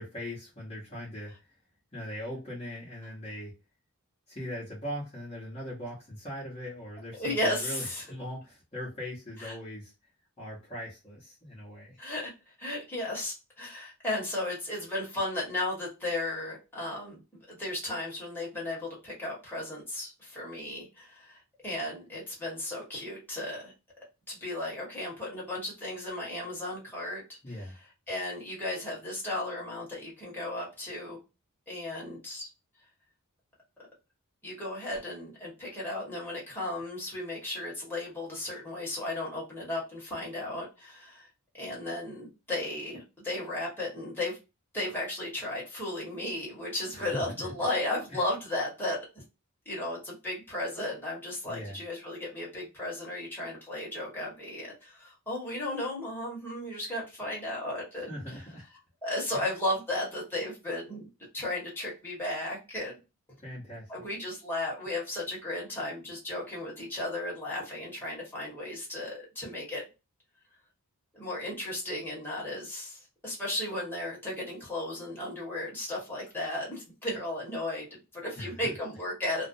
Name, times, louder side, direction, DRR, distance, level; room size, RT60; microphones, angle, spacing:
voice 1, 0.0-1.5 1.9-3.5 4.3-9.9 10.4-12.0 27.4-27.7 46.9-47.5 48.1-48.2 51.4-51.8 57.9-58.7 59.3-59.5 63.4-64.1 78.4-78.7, equal, 30° left, -7 dB, 0.9 m, -40 dB
voice 2, 7.1-8.0 9.4-9.6 12.0-12.3 12.6-17.2 17.5-23.7 24.3-27.2 28.1-31.2 31.7-32.5 34.4-41.3 41.6-44.4 44.7-49.0 49.6-58.1 59.0-61.1 61.3-63.0 63.9-69.8 71.1-79.5, left 1 dB, 10° left, -5 dB, 1.2 m, -35 dB
2.4 x 2.1 x 2.6 m, 0.28 s
head